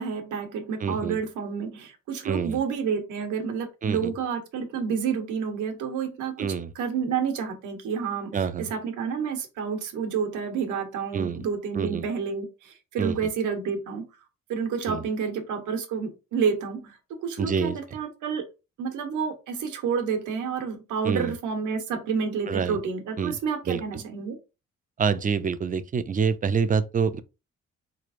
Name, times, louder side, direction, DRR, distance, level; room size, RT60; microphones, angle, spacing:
voice 1, 0.0-6.5 6.7-14.0 14.5-18.4 18.8-24.4, right 6 dB, 80° right, 1.0 m, -29 dB
voice 2, 0.8-1.2 2.2-2.6 3.8-4.1 6.4-6.7 8.3-8.7 11.1-11.4 11.7-12.0 13.0-13.2 14.9-15.0 17.4-17.8 21.0-21.3 22.5-22.8 23.2-23.3 23.7-23.8 25.0-27.2, right 6 dB, 30° right, 0.4 m, -26 dB
4.1 x 3.2 x 2.5 m
cardioid pair, 90°, 30 cm